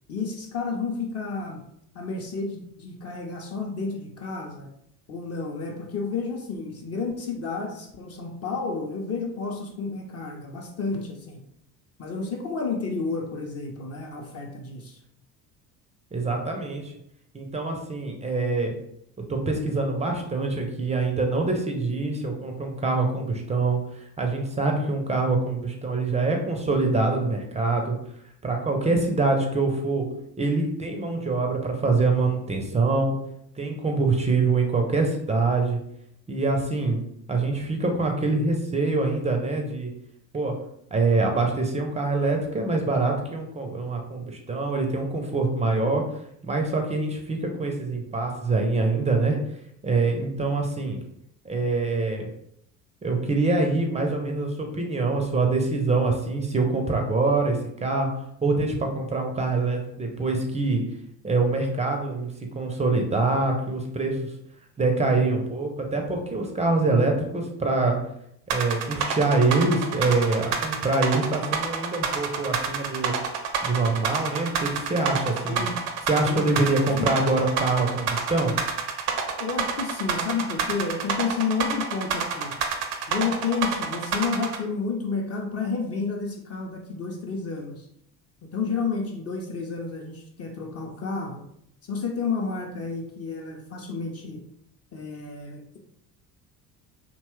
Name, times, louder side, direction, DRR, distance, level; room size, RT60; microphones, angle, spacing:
voice 1, 0.1-1.6 1.9-4.7 5.1-11.4 12.0-15.0 75.4-75.8 76.3-76.4 76.9-77.2 79.4-82.5 83.1-87.9 88.4-91.4 91.9-94.4 94.9-95.8, left 4 dB, 30° left, 0 dB, 0.6 m, -31 dB
voice 2, 16.1-16.9 17.3-18.7 19.3-27.9 28.4-30.1 30.4-33.2 33.6-35.8 36.3-37.0 37.3-39.9 40.3-40.5 40.9-46.0 46.4-49.4 49.8-51.0 51.4-52.3 53.0-58.1 58.4-60.8 61.2-64.2 64.8-68.0 68.5-73.2 73.6-75.7 76.1-78.5, right 3 dB, 15° right, 3 dB, 0.5 m, -25 dB
sound 1, 68.5-84.6, right 6 dB, 70° right, 0.6 m, -27 dB
2.8 x 2.2 x 3.0 m, 0.73 s
hypercardioid pair, 60°, 47 cm